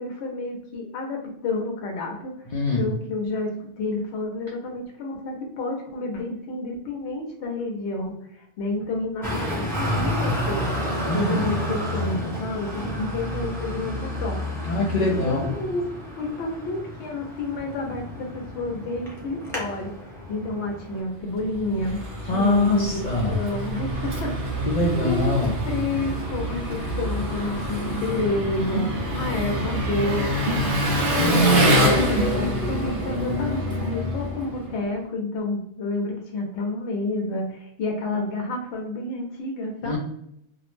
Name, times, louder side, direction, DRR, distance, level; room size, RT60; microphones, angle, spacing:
voice 1, 0.0-2.3 2.7-3.5 3.8-9.7 9.9-10.6 11.1-13.9 14.2-14.4 14.9-15.8 16.2-19.9 20.3-22.0 22.3-24.5 25.0-25.3 25.6-30.6 31.1-40.0, left 2 dB, 75° left, 2 dB, 0.9 m, -30 dB
voice 2, 2.5-2.8 11.0-11.5 14.6-15.5 22.3-23.4 24.7-25.5 31.1-31.7 39.8-40.0, left 1 dB, 55° left, -4 dB, 0.5 m, -23 dB
Traffic noise roadway noise, 9.2-21.0, equal, 5° left, 0.6 m, -30 dB
Engine, 21.3-34.9, equal, 60° right, 0.7 m, -26 dB
2.4 x 2.0 x 3.0 m, 0.75 s
omnidirectional pair, 1.2 m